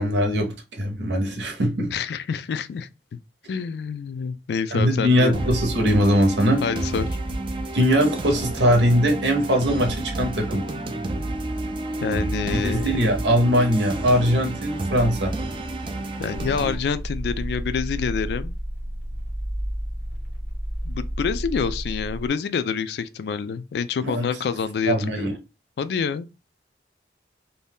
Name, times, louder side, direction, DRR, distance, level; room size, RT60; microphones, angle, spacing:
voice 1, 0.0-1.9 4.7-6.6 7.7-10.6 12.6-15.3 24.0-24.3 24.9-25.4, equal, 90° right, 0.8 m, -21 dB
voice 2, 1.9-3.2 3.5-5.4 6.6-7.1 12.0-12.9 16.2-18.6 20.8-25.4 25.8-26.3, left 6 dB, 70° left, 0.3 m, -27 dB
sound 1, 5.3-16.7, right 2 dB, 30° right, 0.3 m, -30 dB
sound 2, 16.3-22.3, equal, 90° left, 1.0 m, -31 dB
2.6 x 2.2 x 3.4 m
head